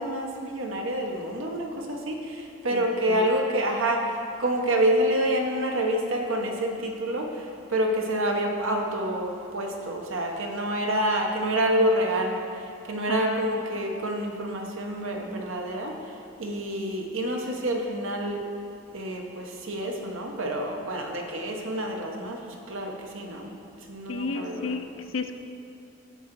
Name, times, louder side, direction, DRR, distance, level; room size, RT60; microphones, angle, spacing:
voice 1, 0.0-12.4 12.9-15.9 16.4-18.4 18.9-23.5 23.9-24.8, right 1 dB, 75° right, 2 dB, 1.0 m, -28 dB
voice 2, 2.7-3.3 13.1-13.7 24.1-25.4, left 4 dB, 75° left, 7 dB, 0.6 m, -33 dB
10.5 x 3.8 x 7.4 m, 2.6 s
head